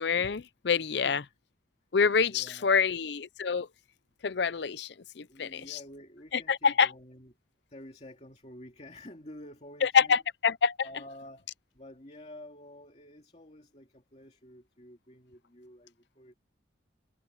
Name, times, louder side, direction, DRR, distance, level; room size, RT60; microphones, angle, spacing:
voice 1, 0.0-1.2 1.9-3.7 4.2-5.8 6.5-6.9 9.8-10.7, left 6 dB, 60° left, 0.6 m, -26 dB
voice 2, 1.0-1.3 2.3-2.9 5.3-7.3 7.7-10.2 10.8-11.5 11.7-16.3, left 1 dB, 35° left, 2.6 m, -49 dB
head